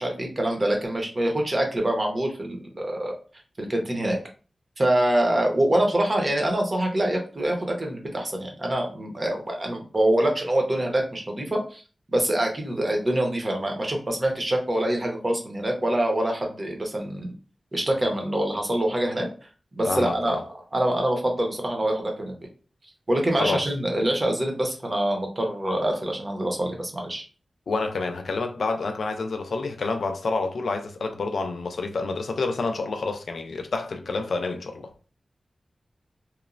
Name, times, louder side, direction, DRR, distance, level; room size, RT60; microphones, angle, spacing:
voice 1, 0.0-3.1 3.6-4.2 4.8-11.8 12.1-17.3 17.7-19.3 19.7-20.4 20.7-22.4 23.1-27.2, right 1 dB, 30° right, 0.7 m, -25 dB
voice 2, 19.8-20.4 23.4-23.7 27.7-34.9, left 3 dB, 80° left, 0.4 m, -28 dB
2.9 x 2.0 x 2.5 m
wide cardioid pair, 125°, 0 cm